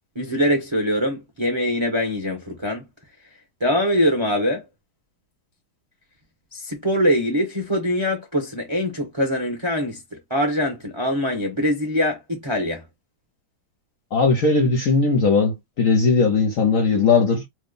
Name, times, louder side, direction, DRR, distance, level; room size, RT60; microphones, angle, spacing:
voice 1, 0.1-2.8 3.6-4.6 6.5-12.8, equal, 35° right, 0.4 m, -23 dB
voice 2, 14.1-17.4, left 4 dB, 60° left, 0.8 m, -18 dB
3.1 x 2.4 x 3.7 m
omnidirectional pair, 2.2 m